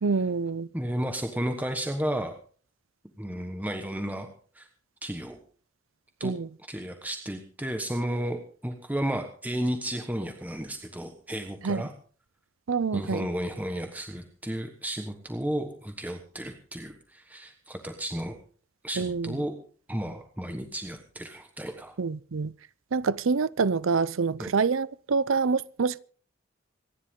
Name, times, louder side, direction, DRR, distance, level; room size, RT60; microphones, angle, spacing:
voice 1, 0.0-0.7 6.2-6.5 11.6-11.8 12.7-13.3 19.0-19.4 22.0-22.5 22.9-26.0, right 4 dB, 80° right, 0.6 m, -26 dB
voice 2, 0.7-2.3 3.2-4.3 4.5-4.7 5.0-5.4 6.2-6.3 6.7-11.9 12.9-18.3 18.8-19.5 19.9-21.9 24.4-24.5, right 1 dB, 10° right, 1.3 m, -33 dB
26.0 x 11.0 x 3.7 m
head